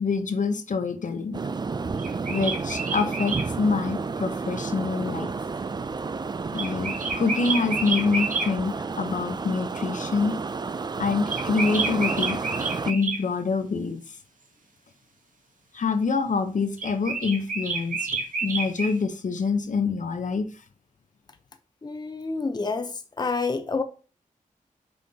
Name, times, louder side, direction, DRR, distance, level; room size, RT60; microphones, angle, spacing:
voice 1, 0.0-1.4 2.3-5.3 6.5-10.4 11.0-12.4 12.9-14.0 15.7-20.5, left 4 dB, 60° left, 0.9 m, -26 dB
sound 1, 1.3-12.9, right 4 dB, 30° right, 0.4 m, -31 dB
sound 2, 2.0-3.5 6.5-8.5 11.3-13.2 16.8-19.0, right 4 dB, 70° right, 2.0 m, -29 dB
voice 2, 21.8-23.8, left 4 dB, 30° left, 0.8 m, -28 dB
8.1 x 5.5 x 2.8 m
cardioid pair, 75°, 15 cm